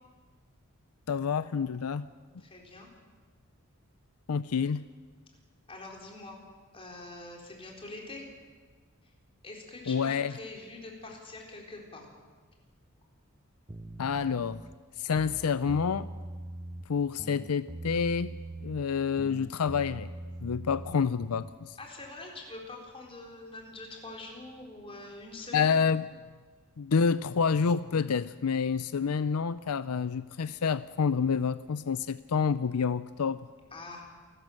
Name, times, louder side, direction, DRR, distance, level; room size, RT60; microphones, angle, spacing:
voice 1, 1.1-2.1 4.3-4.8 9.9-10.3 14.0-14.6 15.0-16.1 16.9-18.3 18.6-20.1 20.4-21.7 25.5-26.0 26.8-33.4, left 6 dB, 85° left, 15 dB, 0.5 m, -28 dB
voice 2, 2.4-2.9 5.7-6.4 6.7-8.3 9.0-9.1 9.4-12.1 21.8-25.8 33.7-34.1, left 2 dB, 25° left, 0 dB, 4.0 m, -44 dB
sound 1, 13.7-14.7 15.1-16.9 17.2-18.9 19.2-21.6, right 1 dB, 20° right, 0.8 m, -42 dB
27.5 x 13.0 x 7.8 m, 1.4 s
head